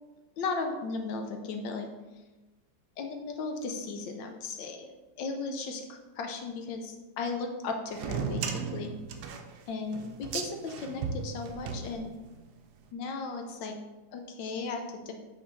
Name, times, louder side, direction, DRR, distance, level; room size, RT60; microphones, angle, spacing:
voice 1, 0.4-1.9 3.0-4.9 5.2-8.9 9.7-12.1 12.9-13.7 14.1-15.1, left 4 dB, 75° left, 4 dB, 1.4 m, -36 dB
sound 1, 7.9-12.5, right 5 dB, 70° right, 1.0 m, -36 dB
5.4 x 4.7 x 4.1 m, 1.1 s
omnidirectional pair, 2.1 m